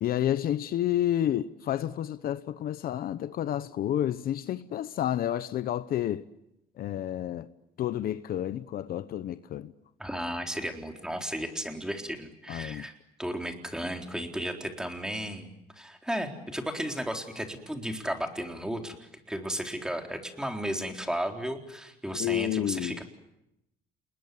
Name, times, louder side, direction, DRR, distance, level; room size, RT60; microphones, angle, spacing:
voice 1, 0.0-6.3 6.8-7.5 7.8-9.7 12.5-12.9 22.2-23.0, left 11 dB, 60° left, 0.9 m, -30 dB
voice 2, 10.0-12.9 13.2-15.5 15.8-23.0, equal, 5° right, 4.0 m, -34 dB
29.0 x 21.0 x 9.5 m
cardioid pair, 110°, 17 cm